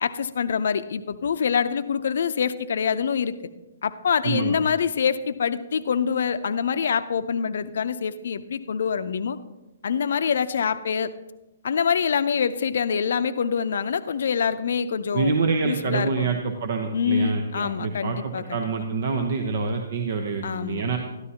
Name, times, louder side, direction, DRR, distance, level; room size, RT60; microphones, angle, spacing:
voice 1, 0.0-3.3 3.8-9.4 9.8-11.1 11.6-15.3 15.6-16.3 16.9-18.6 20.4-20.8, left 6 dB, 60° left, 12 dB, 0.6 m, -25 dB
voice 2, 4.2-4.6 15.1-21.0, right 4 dB, 55° right, 4 dB, 0.9 m, -26 dB
13.0 x 12.5 x 2.9 m, 1.0 s
figure-of-eight pair, 125°, 0 cm